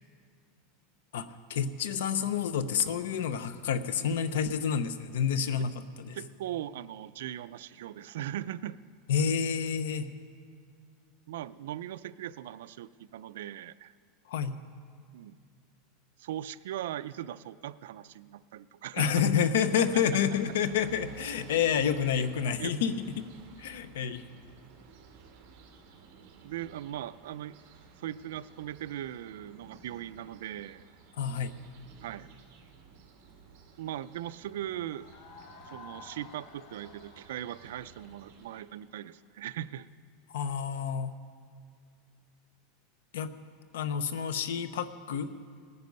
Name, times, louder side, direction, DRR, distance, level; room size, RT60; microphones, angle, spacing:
voice 1, 1.1-6.2 9.1-10.1 14.3-14.6 18.9-23.3 23.6-24.2 31.2-31.5 40.3-41.1 43.1-43.3 43.7-45.3, left 7 dB, 90° left, 13 dB, 0.8 m, -29 dB
voice 2, 6.1-8.8 11.3-13.9 15.1-15.4 16.2-19.3 19.7-20.0 22.6-22.7 26.4-27.6 28.0-30.8 32.0-32.3 33.8-35.1 35.7-39.9, right 12 dB, 80° right, 15 dB, 0.4 m, -39 dB
sound 1, 19.7-38.6, right 6 dB, 45° right, 2.1 m, -54 dB
sound 2, 34.7-39.4, left 4 dB, 45° left, 1.2 m, -53 dB
18.5 x 9.6 x 5.3 m, 2.1 s
supercardioid pair, 170°, 0 cm